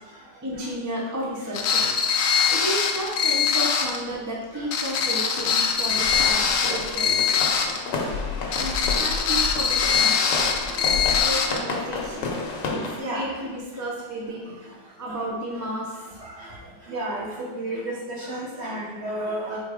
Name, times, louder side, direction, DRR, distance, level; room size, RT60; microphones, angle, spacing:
voice 1, 0.4-1.9 2.5-7.2 8.5-10.2 10.9-12.4 12.7-14.4 14.8-16.2, right 1 dB, 15° right, -3 dB, 0.7 m, -32 dB
sound 1, 1.5-4.0 4.7-7.8 8.5-11.6, left 6 dB, 65° left, 0.8 m, -22 dB
sound 2, 5.0-13.0, left 4 dB, 85° left, 1.6 m, -31 dB
voice 2, 16.9-19.6, right 1 dB, 45° right, -4 dB, 1.2 m, -31 dB
4.7 x 4.3 x 5.0 m, 1.2 s
omnidirectional pair, 1.9 m